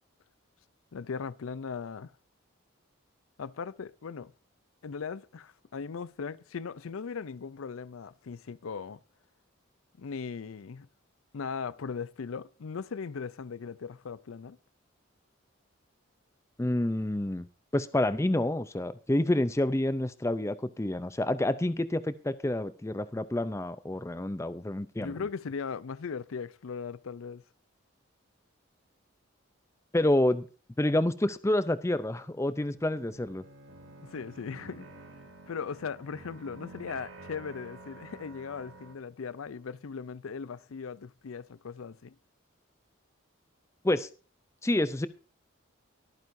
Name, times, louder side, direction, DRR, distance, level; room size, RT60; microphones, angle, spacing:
voice 1, 0.9-2.1 3.4-4.3 4.8-9.0 10.0-10.9 11.3-14.6 25.0-27.4 34.0-34.9 35.5-42.1, left 5 dB, 90° left, 0.5 m, -38 dB
voice 2, 16.6-17.5 17.7-25.1 29.9-30.5 30.8-33.4 43.8-44.1 44.6-45.1, left 1 dB, 15° left, 0.5 m, -28 dB
Bowed string instrument, 32.2-35.8, right 2 dB, 55° right, 1.8 m, -55 dB
sound 1, 33.1-38.9, right 2 dB, 75° right, 1.9 m, -50 dB
23.0 x 9.2 x 2.7 m
head